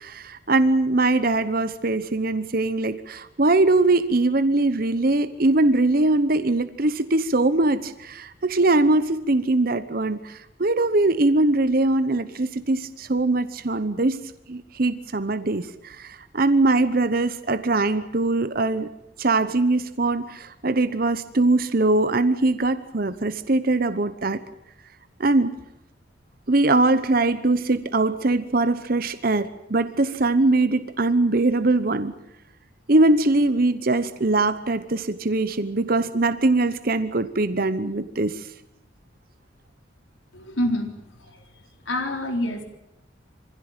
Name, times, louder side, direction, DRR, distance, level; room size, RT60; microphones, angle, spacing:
voice 1, 0.0-18.9 19.2-24.4 25.2-25.6 26.5-32.1 32.9-38.5, right 2 dB, 45° right, 12 dB, 0.9 m, -22 dB
voice 2, 40.3-40.9 41.2-41.4 41.8-42.6, left 1 dB, 80° left, 4 dB, 4.0 m, -26 dB
24.5 x 16.0 x 9.0 m, 0.91 s
head